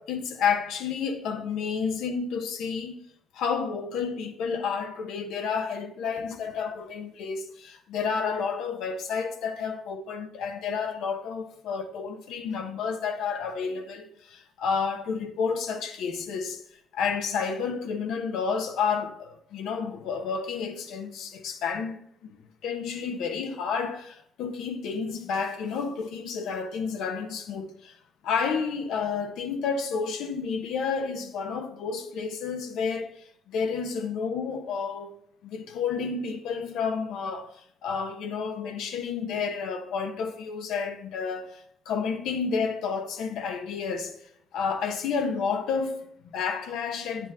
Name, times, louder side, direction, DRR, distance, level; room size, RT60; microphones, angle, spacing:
voice 1, 0.0-3.0 3.3-16.6 16.9-28.0 28.2-33.1 33.5-35.1 35.4-44.2 44.5-47.3, left 5 dB, 85° left, 1.1 m, -30 dB
10.0 x 7.2 x 3.6 m
cardioid pair, 90°, 0 cm